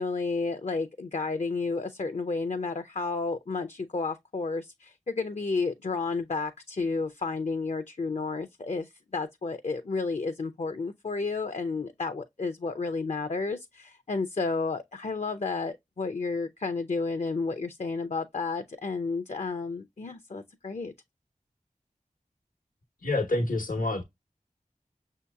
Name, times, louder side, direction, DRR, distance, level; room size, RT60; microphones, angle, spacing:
voice 1, 0.0-20.9, left 4 dB, 55° left, 0.5 m, -31 dB
voice 2, 23.0-24.0, left 2 dB, 80° left, 0.9 m, -27 dB
6.2 x 2.8 x 2.2 m
wide cardioid pair, 60°, 14 cm